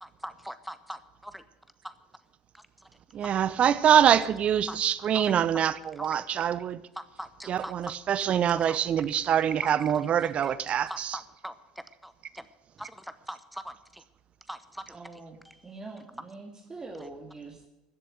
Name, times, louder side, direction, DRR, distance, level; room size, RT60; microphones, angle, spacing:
voice 1, 0.0-1.4 1.8-1.9 2.5-2.9 3.2-3.3 4.7-4.8 5.1-5.4 6.0-6.4 6.9-7.9 8.5-8.8 9.6-12.5 12.8-14.1 14.5-15.8 17.0-17.1, equal, ahead, 0.9 m, -43 dB
voice 2, 3.1-6.8 7.4-11.2, right 9 dB, 40° right, 0.7 m, -24 dB
voice 3, 14.9-15.4 15.6-17.7, right 3 dB, 20° right, 2.1 m, -43 dB
14.0 x 7.8 x 8.9 m
hypercardioid pair, 70°, 3 cm